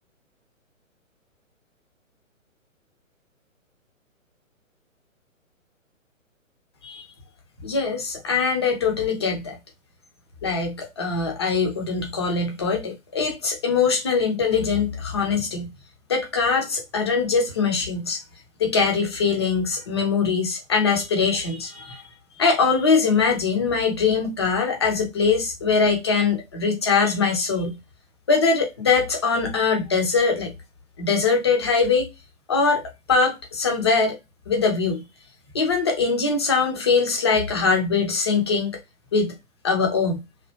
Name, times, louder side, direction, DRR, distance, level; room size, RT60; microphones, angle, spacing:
voice 1, 7.6-9.6 10.4-15.7 16.1-18.2 18.6-22.0 22.4-27.8 28.3-30.5 31.0-32.1 32.5-32.8 33.1-34.2 34.5-35.0 35.5-38.8 39.1-39.3 39.6-40.2, left 5 dB, 20° left, 0.5 m, -22 dB
3.1 x 2.2 x 2.9 m
figure-of-eight pair, 130°, 41 cm